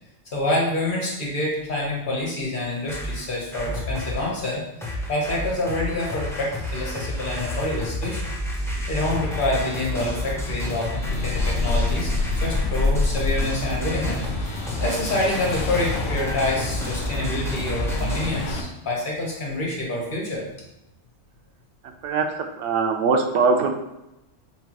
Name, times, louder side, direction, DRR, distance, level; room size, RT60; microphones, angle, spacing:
voice 1, 0.3-4.6 5.1-8.3 8.9-20.5, left 1 dB, 45° left, -2 dB, 1.1 m, -27 dB
sound 1, 2.9-4.3 4.8-18.3, left 1 dB, 5° left, 0.4 m, -30 dB
sound 2, 11.0-18.6, left 2 dB, 80° left, 1.0 m, -27 dB
voice 2, 22.0-23.7, right 4 dB, 80° right, 4 dB, 0.9 m, -22 dB
5.5 x 2.3 x 2.9 m, 0.92 s
omnidirectional pair, 1.2 m